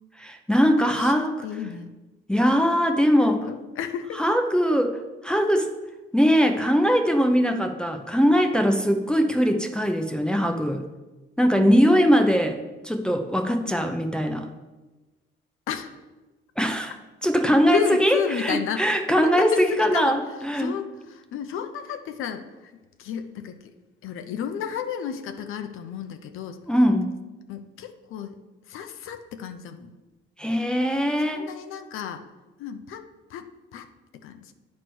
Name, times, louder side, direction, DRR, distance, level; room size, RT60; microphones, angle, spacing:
voice 1, 0.2-1.4 2.3-3.4 4.2-5.7 6.1-10.8 11.4-12.6 12.8-14.5 16.6-17.0 17.2-20.7 26.7-27.1 30.4-31.5, equal, 5° left, 4 dB, 0.6 m, -21 dB
voice 2, 0.8-1.9 3.2-4.2 15.7-16.0 17.7-18.9 19.2-22.7 23.0-23.7 24.0-26.6 27.5-28.4 28.7-29.9 31.2-32.2 32.6-33.5 33.7-33.9 34.2-34.5, left 8 dB, 80° left, 7 dB, 0.6 m, -32 dB
9.2 x 3.2 x 6.1 m, 1.2 s
cardioid pair, 95°, 21 cm